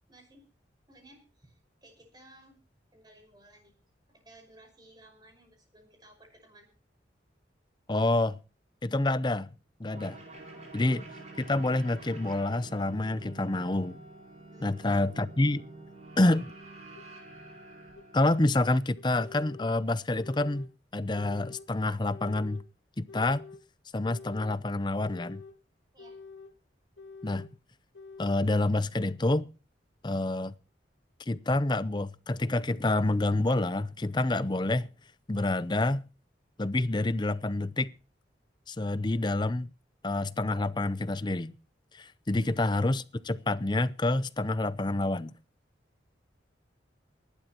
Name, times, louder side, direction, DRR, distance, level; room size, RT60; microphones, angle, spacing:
voice 1, 0.1-0.4 0.9-1.5 1.8-2.6 2.9-3.7 4.1-6.7 10.5-10.6 14.5-14.8 25.9-26.2 42.3-42.5, right 1 dB, 25° right, 5.5 m, -57 dB
voice 2, 7.9-8.4 8.8-9.5 9.8-10.2 10.7-11.0 11.4-14.0 14.6-15.7 16.2-16.5 18.1-22.6 23.0-23.4 23.9-25.4 27.2-27.5 28.2-29.5 30.0-30.5 31.3-34.9 35.3-36.1 36.6-37.9 38.7-39.7 40.0-41.5 41.9-45.3, left 2 dB, 25° left, 0.6 m, -28 dB
sound 1, 9.9-18.9, right 2 dB, 40° right, 5.0 m, -48 dB
sound 2, 17.0-17.1 18.0-18.1 19.0-19.7 20.1-20.7 21.1-21.7 22.1-22.7 23.1-23.6 24.0-24.6 25.0-25.6 26.0-26.5 27.0-27.5 27.9-28.5, left 4 dB, 70° left, 2.2 m, -47 dB
23.0 x 12.0 x 3.0 m
head